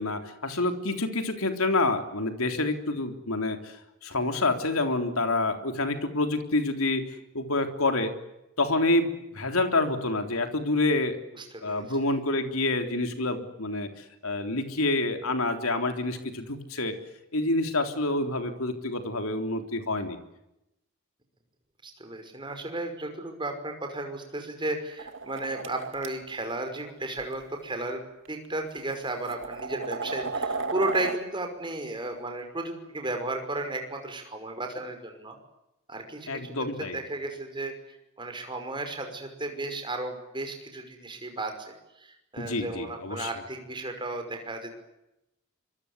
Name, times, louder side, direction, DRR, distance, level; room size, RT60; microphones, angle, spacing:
voice 1, 0.0-8.1 8.6-11.2 11.6-17.0 17.3-20.2 36.3-37.0 42.4-43.3, left 2 dB, 80° left, 6 dB, 3.6 m, -28 dB
voice 2, 11.3-11.9 21.8-35.4 35.9-36.5 36.9-37.7 38.2-44.7, right 2 dB, 20° right, 5 dB, 5.6 m, -34 dB
sound 1, 25.0-26.1 27.2-27.3 28.3-28.4 28.9-31.2, right 4 dB, 60° right, 2.2 m, -34 dB
26.0 x 24.0 x 8.2 m, 0.88 s
head